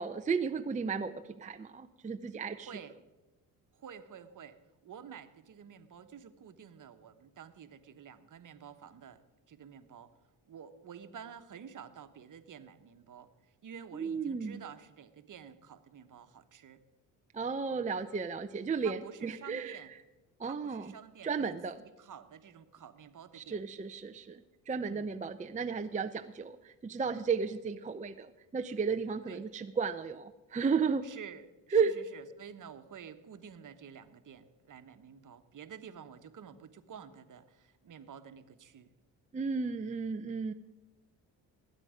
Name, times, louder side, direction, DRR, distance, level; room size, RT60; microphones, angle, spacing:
voice 1, 0.0-2.7 13.9-14.6 17.3-19.8 20.4-20.9 21.2-21.8 23.3-31.1 31.7-31.9 39.3-40.5, right 5 dB, 20° right, 8 dB, 0.6 m, -34 dB
voice 2, 2.6-2.9 3.7-4.6 4.8-9.2 9.5-10.1 10.5-13.3 13.6-16.8 18.8-19.9 20.4-21.6 22.0-23.6 24.8-25.1 29.3-29.4 31.0-38.9, right 7 dB, 45° right, 10 dB, 1.2 m, -50 dB
19.5 x 9.3 x 5.1 m, 1.1 s
supercardioid pair, 65°, 42 cm